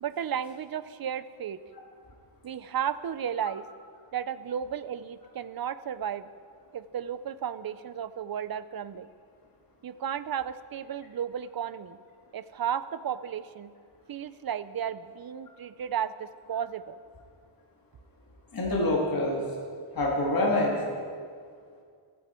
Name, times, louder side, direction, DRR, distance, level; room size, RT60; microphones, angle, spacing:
voice 1, 0.0-1.6 2.4-3.7 4.1-6.3 6.7-9.1 9.8-12.0 12.3-13.7 14.1-17.0, right 9 dB, 45° right, 14 dB, 0.6 m, -34 dB
voice 2, 18.5-19.4 19.9-20.8, left 1 dB, 45° left, -2 dB, 2.2 m, -26 dB
28.0 x 9.4 x 4.4 m, 2.1 s
wide cardioid pair, 150°, 50 cm